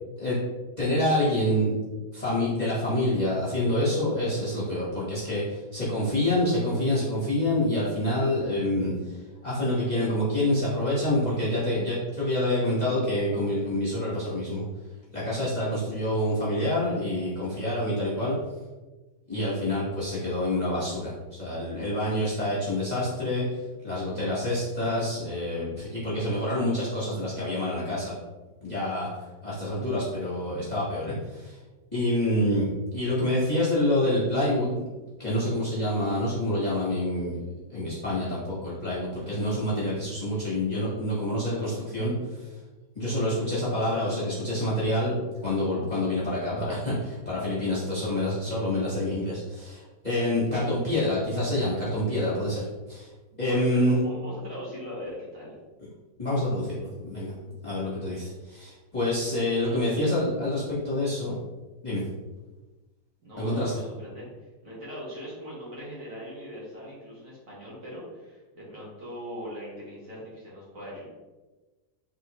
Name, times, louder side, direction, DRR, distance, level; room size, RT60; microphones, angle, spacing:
voice 1, 0.8-1.7 2.1-14.6 15.1-18.3 19.3-21.1 21.4-28.2 28.6-31.6 31.9-32.7 32.9-34.8 35.2-37.4 37.7-42.5 42.9-53.1 53.4-54.0 56.2-57.3 57.6-61.4 61.8-62.0 63.4-63.7, left 1 dB, 25° left, -9 dB, 1.0 m, -27 dB
voice 2, 53.4-55.6 59.6-59.8 63.2-64.2 64.6-71.0, equal, 45° right, -6 dB, 1.5 m, -40 dB
4.3 x 3.6 x 3.0 m, 1.2 s
omnidirectional pair, 2.1 m